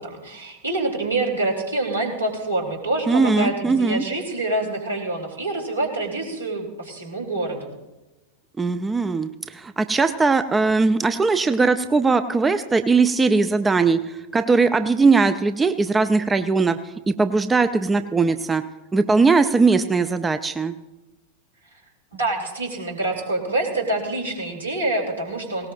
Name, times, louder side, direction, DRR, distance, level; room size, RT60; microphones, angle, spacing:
voice 1, 0.0-7.7 22.1-25.7, right 2 dB, 80° right, 0 dB, 2.9 m, -26 dB
voice 2, 3.1-4.0 8.6-16.8 17.1-18.6 18.9-20.7, right 4 dB, 15° right, 11 dB, 0.5 m, -20 dB
18.5 x 18.0 x 2.5 m, 1.0 s
figure-of-eight pair, 90°, 0 cm